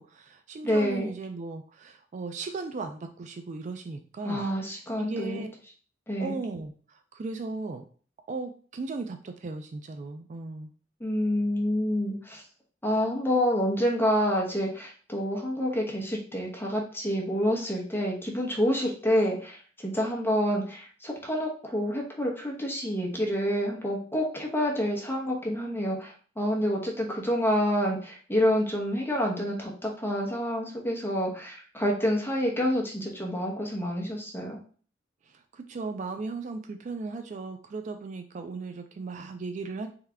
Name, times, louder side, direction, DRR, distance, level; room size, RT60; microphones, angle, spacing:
voice 1, 0.0-4.5 5.0-5.5 6.2-7.8 8.3-10.7 35.3-39.9, right 3 dB, 40° right, 7 dB, 0.3 m, -37 dB
voice 2, 0.6-1.1 4.2-5.4 6.1-6.4 11.0-12.4 12.8-34.6, equal, 15° left, -1 dB, 0.9 m, -28 dB
3.5 x 3.2 x 3.4 m, 0.42 s
head